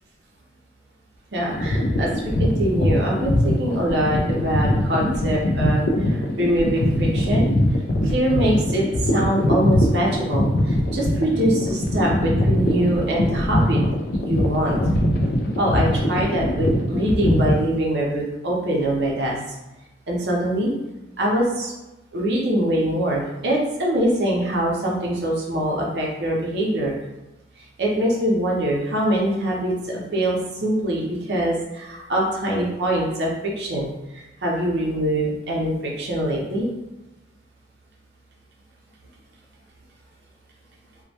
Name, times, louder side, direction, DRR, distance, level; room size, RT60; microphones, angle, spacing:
voice 1, 1.3-7.5 8.0-13.8 14.1-14.8 15.6-19.4 20.1-20.7 21.2-21.7 22.1-26.9 27.8-33.3 33.6-36.7, right 1 dB, 60° right, -2 dB, 0.6 m, -23 dB
sound 1, 1.5-17.6, left 1 dB, 55° left, 0.4 m, -22 dB
2.2 x 2.1 x 2.7 m, 1.0 s
head